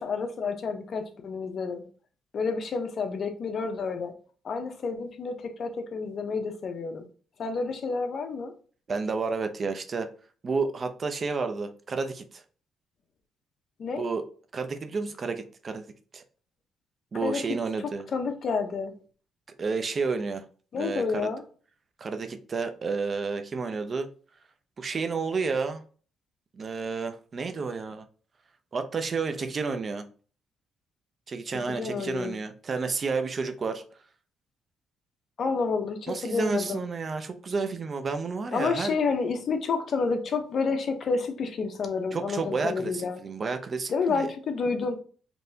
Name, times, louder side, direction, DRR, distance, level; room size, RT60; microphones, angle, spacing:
voice 1, 0.0-1.8 2.3-4.1 4.4-7.1 7.4-8.5 13.8-14.0 17.2-17.4 18.1-18.9 20.7-21.4 31.8-32.4 35.4-36.8 38.5-43.2 43.9-45.0, left 4 dB, 55° left, 0.8 m, -29 dB
voice 2, 8.9-10.1 10.4-12.4 14.0-14.2 14.5-16.2 17.1-18.0 19.6-20.4 20.8-21.3 22.0-24.1 24.8-25.8 26.5-28.0 28.7-30.1 31.3-33.8 36.1-39.0 42.1-44.3, right 4 dB, 40° right, 0.6 m, -31 dB
4.4 x 3.2 x 2.7 m
cardioid pair, 90°, 0 cm